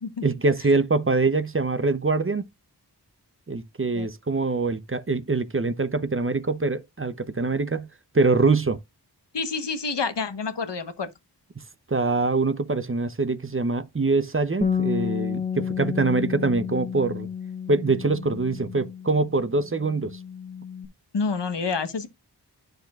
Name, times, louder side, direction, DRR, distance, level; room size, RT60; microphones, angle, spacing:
voice 1, 0.2-2.4 3.5-7.9 8.1-8.8 11.9-17.3 17.7-20.2, right 3 dB, 30° right, 0.7 m, -24 dB
voice 2, 9.3-11.1 21.1-22.1, left 4 dB, 85° left, 1.1 m, -28 dB
Bass guitar, 14.6-19.3 19.6-20.9, left 7 dB, 20° left, 1.2 m, -31 dB
9.6 x 6.6 x 2.3 m
wide cardioid pair, 40°, 41 cm